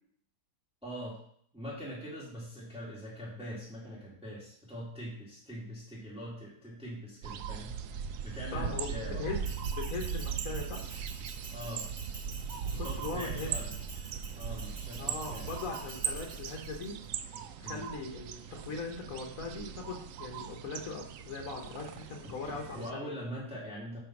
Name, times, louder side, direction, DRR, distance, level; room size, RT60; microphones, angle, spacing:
voice 1, 0.8-1.2 1.5-7.8 8.2-9.2 11.5-11.9 12.7-13.7 14.3-15.5 17.6-17.8 22.2-24.0, equal, 5° right, -6 dB, 1.9 m, -42 dB
sound 1, 7.2-22.9, right 7 dB, 80° right, 0.7 m, -39 dB
voice 2, 8.5-10.9 12.5-13.5 14.9-17.0 17.6-23.1, left 4 dB, 55° left, 2 dB, 1.2 m, -40 dB
Bell, 9.4-16.9, right 3 dB, 35° right, 0.7 m, -48 dB
8.9 x 3.4 x 5.8 m, 0.65 s
omnidirectional pair, 1.9 m